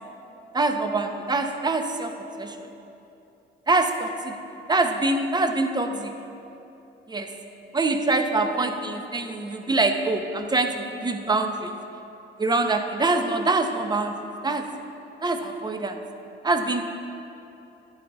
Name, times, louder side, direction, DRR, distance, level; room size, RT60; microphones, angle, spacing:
voice 1, 0.5-2.7 3.7-4.4 4.7-6.1 7.1-7.3 7.7-11.7 12.4-14.7 15.2-16.0 16.4-16.9, right 2 dB, 20° right, 6 dB, 0.6 m, -25 dB
12.0 x 7.6 x 2.3 m, 2.9 s
cardioid pair, 90°, 20 cm